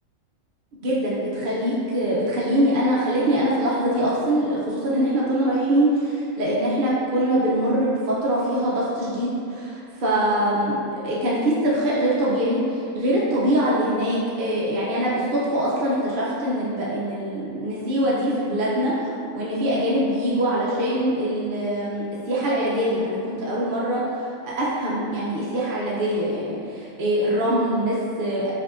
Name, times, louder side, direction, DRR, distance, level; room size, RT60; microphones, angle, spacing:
voice 1, 0.7-19.1 19.3-24.0 24.4-28.5, right 1 dB, 55° right, -7 dB, 0.6 m, -23 dB
5.9 x 2.7 x 2.5 m, 2.4 s
omnidirectional pair, 1.4 m